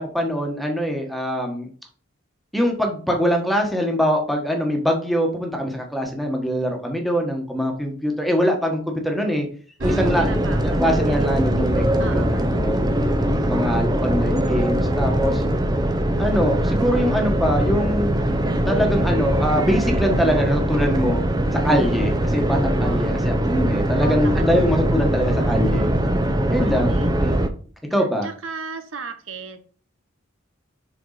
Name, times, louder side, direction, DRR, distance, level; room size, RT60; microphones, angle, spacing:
voice 1, 0.0-1.7 2.5-9.5 9.8-12.9 13.5-15.4 16.2-18.2 18.7-21.2 21.5-25.9 26.5-27.4 27.9-28.3, equal, ahead, 2 dB, 1.4 m, -23 dB
sound 1, 9.8-27.5, right 1 dB, 20° right, 0.7 m, -21 dB
voice 2, 9.8-11.6 12.0-12.3 13.5-13.9 22.8-23.2 24.0-24.4 26.6-27.3 28.0-29.6, right 4 dB, 85° right, 9 dB, 0.9 m, -36 dB
6.9 x 4.6 x 4.0 m, 0.43 s
head